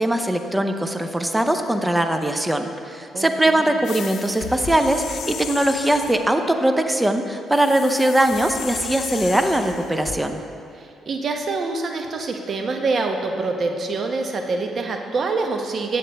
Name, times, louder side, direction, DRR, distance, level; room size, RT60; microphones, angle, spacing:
voice 1, 0.0-10.4, right 1 dB, 10° right, 6 dB, 0.6 m, -21 dB
voice 2, 3.1-3.9 10.7-16.0, right 3 dB, 50° right, 3 dB, 0.9 m, -26 dB
sound 1, 3.8-6.3 7.5-10.2, left 7 dB, 75° left, 0.6 m, -34 dB
9.4 x 7.6 x 3.4 m, 2.5 s
cardioid pair, 90°, 0 cm